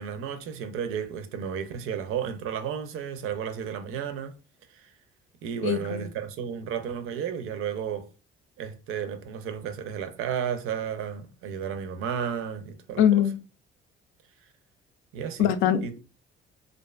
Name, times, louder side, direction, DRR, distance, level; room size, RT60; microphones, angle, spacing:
voice 1, 0.0-4.4 4.7-4.9 5.4-8.1 8.6-13.0 15.1-15.5 15.8-15.9, right 8 dB, 85° right, 0.5 m, -33 dB
voice 2, 5.6-6.0 13.0-13.3 15.4-16.0, left 10 dB, 70° left, 0.4 m, -22 dB
2.5 x 2.3 x 2.3 m
cardioid pair, 135°, 21 cm